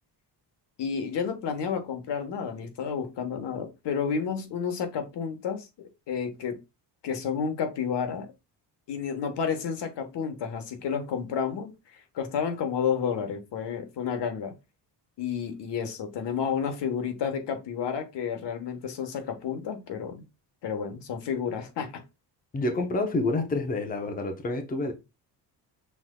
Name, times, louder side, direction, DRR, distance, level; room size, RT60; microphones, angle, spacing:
voice 1, 0.8-6.6 7.0-8.3 8.9-14.5 15.2-20.2 20.6-22.0, left 7 dB, 75° left, 1.3 m, -31 dB
voice 2, 22.5-24.9, left 2 dB, 20° left, 0.8 m, -28 dB
6.1 x 3.7 x 2.2 m
cardioid pair, 180°, 42 cm